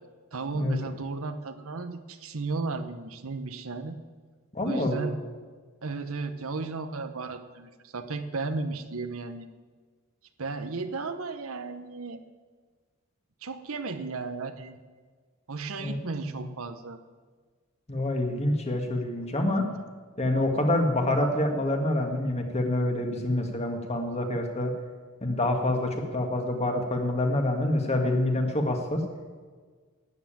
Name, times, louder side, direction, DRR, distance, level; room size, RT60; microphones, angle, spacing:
voice 1, 0.3-4.0 4.6-5.2 5.8-9.5 10.4-12.2 13.4-14.8 15.5-17.0 19.2-19.3, right 3 dB, 65° right, 9 dB, 0.9 m, -34 dB
voice 2, 4.5-5.2 15.8-16.0 17.9-19.7 20.2-24.7 25.2-29.0, left 1 dB, 30° left, 3 dB, 1.8 m, -26 dB
12.0 x 9.6 x 9.0 m, 1.5 s
head